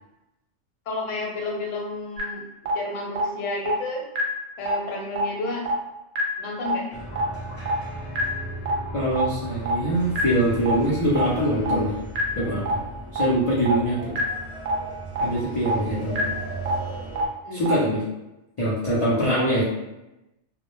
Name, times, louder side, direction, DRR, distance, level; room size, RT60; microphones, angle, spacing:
voice 1, 0.9-4.1 4.6-5.7 6.4-7.0 17.4-17.7 19.3-19.4, left 2 dB, 90° left, -1 dB, 1.0 m, -31 dB
sound 1, 2.2-2.3 2.7-2.8 3.2-3.3 3.7-3.8 4.1-4.2 4.7-4.8 5.2-5.3 5.7-5.8 6.1-6.2 6.7-6.8 7.2-7.3 7.7-7.8 8.1-8.2 8.7-8.8 9.2-9.3 9.7-9.8 10.1-10.2 10.7-10.8 11.2-11.3 11.7-11.8 12.1-12.2 12.7-12.8 13.2-13.3 13.7-13.8 14.1-14.2 14.7-14.8 15.2-15.3 15.7-15.8 16.1-16.2 16.7-16.8 17.2-17.3 17.7-17.8, right 7 dB, 65° right, 0.7 m, -28 dB
sound 2, 6.9-17.3, right 2 dB, 10° left, 0.9 m, -36 dB
voice 2, 8.9-12.0 12.4-12.6 13.1-14.1 15.2-16.2 17.5-18.0 18.6-19.6, right 1 dB, 60° left, -8 dB, 0.3 m, -23 dB
2.1 x 2.1 x 2.9 m, 0.96 s
omnidirectional pair, 1.3 m